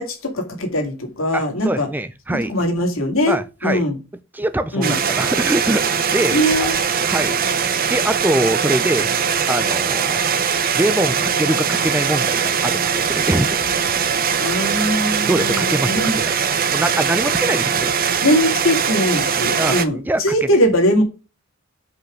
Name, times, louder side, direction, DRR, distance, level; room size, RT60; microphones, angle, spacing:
voice 1, 0.0-1.9 2.3-3.4 3.6-3.9 4.7-5.0 6.3-6.7 14.4-16.2 18.2-21.0, equal, 70° left, 2.4 m, -20 dB
voice 2, 1.3-2.5 3.3-3.8 4.3-6.7 7.1-7.4 7.9-9.1 9.5-10.2 10.7-14.2 15.3-16.3 16.7-17.9 19.6-20.2, right 1 dB, 10° right, 0.4 m, -23 dB
sound 1, 4.8-19.9, right 7 dB, 45° right, 0.8 m, -21 dB
5.8 x 5.2 x 6.2 m
head